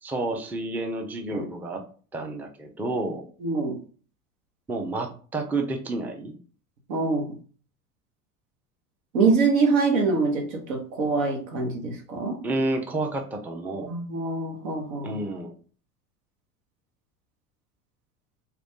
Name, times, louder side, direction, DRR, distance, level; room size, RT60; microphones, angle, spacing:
voice 1, 0.0-1.9 2.1-3.3 4.7-6.4 12.4-13.9 15.0-15.5, right 2 dB, 5° right, 3 dB, 0.4 m, -30 dB
voice 2, 3.4-3.8 6.9-7.3 9.1-12.4 13.9-15.2, right 4 dB, 80° right, 3 dB, 1.2 m, -24 dB
3.1 x 2.5 x 3.6 m, 0.41 s
hypercardioid pair, 90°, 40 cm